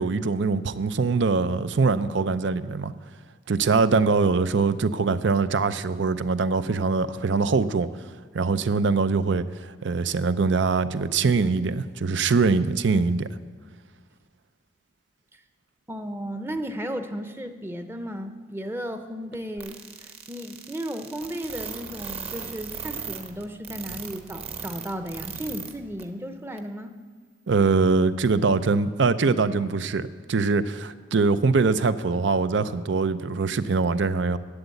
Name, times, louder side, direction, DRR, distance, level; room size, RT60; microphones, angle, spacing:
voice 1, 0.0-2.9 3.5-7.9 8.3-13.3 27.5-34.4, right 4 dB, 75° right, 13 dB, 0.5 m, -23 dB
voice 2, 15.9-19.7 20.0-26.9, equal, 15° right, 7 dB, 0.7 m, -34 dB
sound 1, 19.6-25.7 26.0-26.1 26.6-26.7, right 6 dB, 35° right, 1.0 m, -37 dB
11.5 x 8.0 x 8.2 m, 1.5 s
head